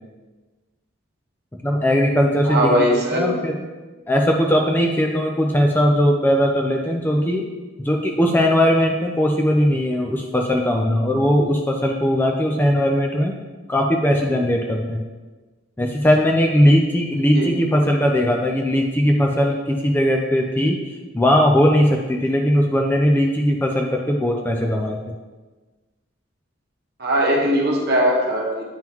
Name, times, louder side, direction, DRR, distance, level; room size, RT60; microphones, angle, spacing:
voice 1, 1.6-3.6 4.1-7.5 7.8-13.4 13.7-15.0 15.8-25.0, equal, 10° left, 1 dB, 0.3 m, -19 dB
voice 2, 2.4-3.3 17.3-17.5 27.0-28.6, equal, 50° right, -1 dB, 1.1 m, -19 dB
8.9 x 3.7 x 3.0 m, 1.3 s
head